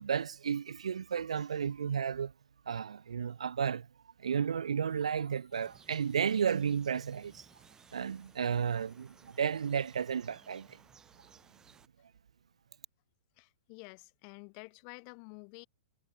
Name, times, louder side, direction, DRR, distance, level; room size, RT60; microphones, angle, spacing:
voice 1, 0.0-2.3 2.7-3.9 4.2-7.5 7.9-10.8, right 7 dB, 80° right, 0.5 m, -33 dB
sound 1, 4.9-10.2, left 10 dB, 25° left, 7.4 m, -72 dB
sound 2, 5.5-11.9, right 7 dB, 15° right, 3.5 m, -60 dB
voice 2, 13.4-15.7, left 40 dB or more, 45° left, 5.9 m, -50 dB
hypercardioid pair, 115°, 3 cm